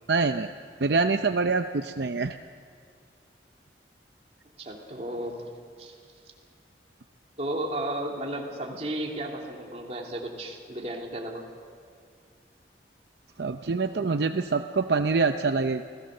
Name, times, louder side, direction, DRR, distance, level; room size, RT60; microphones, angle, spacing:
voice 1, 0.1-0.5 0.8-2.4 13.4-15.8, right 4 dB, 75° right, 7 dB, 0.6 m, -25 dB
voice 2, 4.6-5.5 5.8-5.9 7.4-11.4, right 1 dB, 40° right, 0 dB, 3.0 m, -34 dB
29.0 x 18.0 x 6.6 m, 2.2 s
head